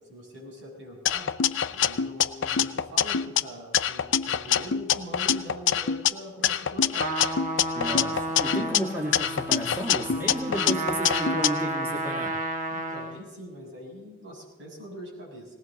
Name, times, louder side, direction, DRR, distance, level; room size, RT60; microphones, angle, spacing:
voice 1, 0.1-1.3 1.7-7.1 12.7-15.5, equal, 60° right, -2 dB, 7.0 m, -43 dB
sound 1, 1.1-3.4 3.7-6.1 6.4-8.8 9.1-11.5, left 8 dB, 60° left, 0.5 m, -25 dB
Trumpet, 6.9-13.2, right 2 dB, 40° right, 1.4 m, -32 dB
voice 2, 7.7-12.4, equal, 10° right, -1 dB, 1.6 m, -32 dB
20.0 x 17.5 x 4.0 m, 1.1 s
head